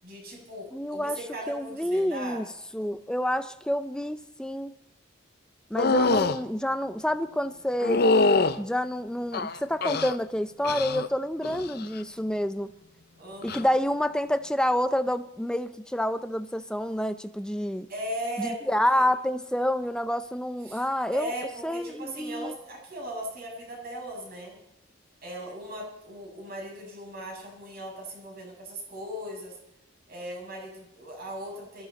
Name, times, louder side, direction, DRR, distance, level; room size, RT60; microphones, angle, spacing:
voice 1, 0.0-2.4 13.2-13.7 17.9-19.0 20.6-20.8 21.1-24.6 25.2-29.6 30.1-31.9, right 1 dB, 45° right, 7.2 m, -38 dB
voice 2, 0.7-1.2 1.5-2.5 2.7-4.7 5.7-8.1 8.6-12.7 13.4-17.9 18.4-21.3 21.6-22.6, equal, 5° left, 0.6 m, -28 dB
sound 1, 5.8-6.4 7.8-8.6 9.3-10.2 10.6-11.1 11.4-11.9 13.4-13.6, left 3 dB, 50° left, 0.6 m, -24 dB
22.5 x 14.5 x 4.2 m
head